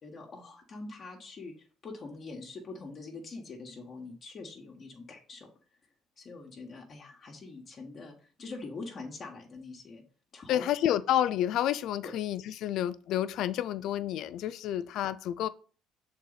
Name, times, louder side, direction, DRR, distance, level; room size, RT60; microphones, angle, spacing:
voice 1, 0.0-5.5 6.2-10.0 10.3-10.7 12.0-12.1, left 3 dB, 40° left, 1.5 m, -44 dB
voice 2, 10.5-15.5, left 11 dB, 70° left, 0.4 m, -29 dB
6.5 x 4.1 x 4.0 m
cardioid pair, 105°, 0 cm